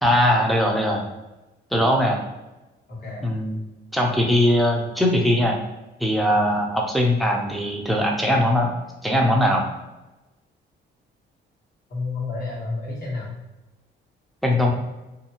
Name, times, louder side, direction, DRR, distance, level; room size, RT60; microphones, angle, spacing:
voice 1, 0.0-1.0 1.7-2.2 3.2-3.6 3.9-5.6 6.0-8.7 9.0-9.7 14.4-14.7, left 1 dB, ahead, 0 dB, 0.6 m, -20 dB
voice 2, 2.9-3.3 6.3-6.6 11.9-13.3, left 3 dB, 45° left, -5 dB, 1.3 m, -31 dB
2.6 x 2.3 x 2.8 m, 1.1 s
cardioid pair, 90°, 20 cm